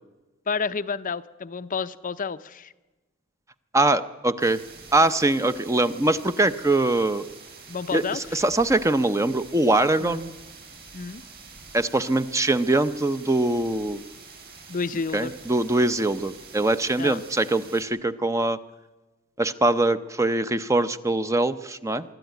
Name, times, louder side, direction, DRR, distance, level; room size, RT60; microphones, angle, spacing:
voice 1, 0.5-2.7 7.7-8.4 10.0-10.2 10.9-11.2 14.7-15.3 17.0-17.2, left 5 dB, 40° left, 12 dB, 0.6 m, -30 dB
voice 2, 3.7-4.6 4.9-7.2 7.9-10.3 11.7-14.0 15.1-18.6 19.4-22.0, right 2 dB, 15° right, 12 dB, 0.6 m, -23 dB
sound 1, 4.4-17.8, right 4 dB, 45° right, 5.5 m, -46 dB
24.0 x 13.0 x 9.2 m, 1.2 s
head